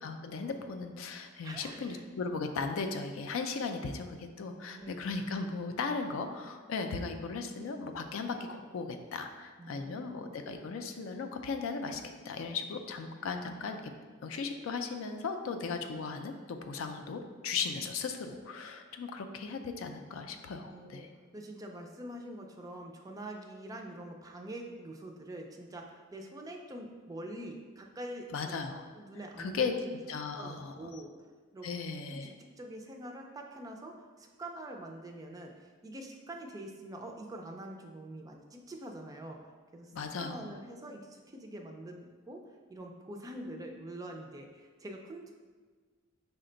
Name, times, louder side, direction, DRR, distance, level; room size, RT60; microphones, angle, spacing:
voice 1, 0.0-13.9 14.2-21.1 28.3-28.8 29.4-29.7 30.1-31.0 31.6-32.3 39.9-40.6, left 4 dB, 75° left, 6 dB, 0.4 m, -37 dB
voice 2, 1.4-2.0 4.7-5.0 9.6-10.3 20.7-21.1 21.3-29.8 30.4-31.1 31.5-31.7 32.1-39.4 39.7-39.9 40.2-42.4 42.7-45.3, right 1 dB, 15° right, 2 dB, 0.3 m, -45 dB
5.7 x 2.2 x 3.8 m, 1.5 s
head